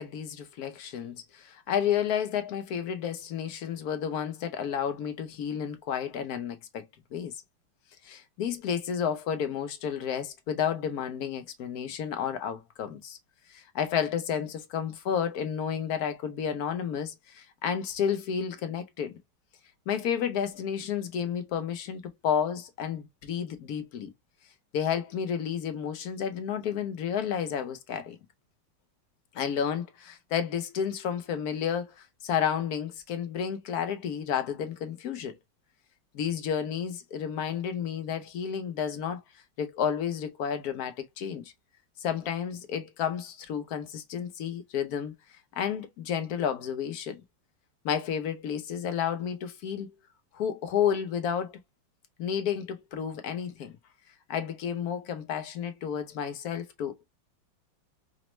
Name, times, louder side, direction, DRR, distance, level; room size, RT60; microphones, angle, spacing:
voice 1, 0.0-6.9 7.1-7.3 8.0-13.2 13.5-19.2 19.9-24.1 24.7-28.2 29.3-35.3 36.1-39.2 39.6-41.5 42.0-45.1 45.5-47.2 47.8-49.9 50.3-51.6 52.2-53.7 54.3-57.1, left 8 dB, 65° left, 1.0 m, -31 dB
5.1 x 2.1 x 3.0 m
omnidirectional pair, 2.1 m